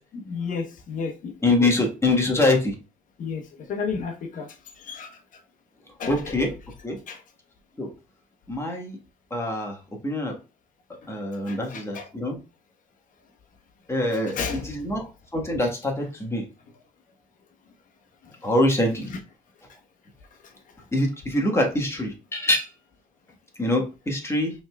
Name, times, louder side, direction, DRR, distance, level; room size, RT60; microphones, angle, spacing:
voice 1, 0.1-1.8 3.2-5.4 6.0-6.5 7.1-7.2 11.5-12.1 14.1-14.9 16.7-16.8 18.2-18.4 19.0-19.2 20.4-20.9, left 5 dB, 50° left, 0.9 m, -34 dB
voice 2, 1.4-2.7 6.1-6.5 6.8-7.0 7.8-7.9 8.5-9.0 9.3-9.7 10.0-10.4 11.1-12.4 13.9-14.4 14.8-15.0 15.3-16.4 18.4-19.1 20.9-22.7 23.6-24.5, left 1 dB, 15° left, 1.3 m, -24 dB
5.4 x 3.5 x 2.3 m
cardioid pair, 110°, 17 cm